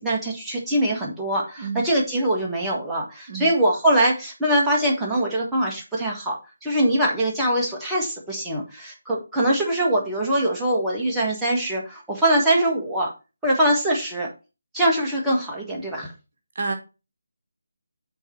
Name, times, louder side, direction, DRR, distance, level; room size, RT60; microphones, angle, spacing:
voice 1, 0.0-6.4 6.6-13.1 13.4-14.3 14.7-16.1, right 1 dB, 5° right, -5 dB, 1.6 m, -23 dB
voice 2, 1.6-1.8 3.3-3.5 16.5-16.7, right 4 dB, 45° right, 5 dB, 1.4 m, -28 dB
8.8 x 3.9 x 4.5 m, 0.30 s
figure-of-eight pair, 155°, 0 cm